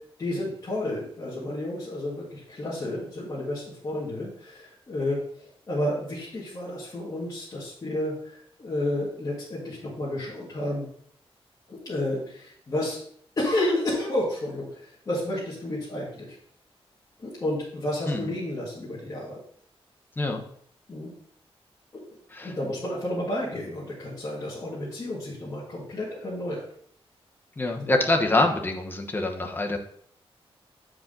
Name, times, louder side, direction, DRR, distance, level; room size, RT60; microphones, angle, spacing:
voice 1, 0.2-10.9 11.7-13.0 13.4-16.4 17.2-19.4 20.9-21.1 21.9-22.0 22.4-26.6 27.8-27.9, left 1 dB, 35° left, -8 dB, 2.1 m, -31 dB
voice 2, 27.6-29.8, left 2 dB, 20° left, 2 dB, 1.0 m, -25 dB
8.2 x 5.0 x 3.8 m, 0.63 s
wide cardioid pair, 145°, 10 cm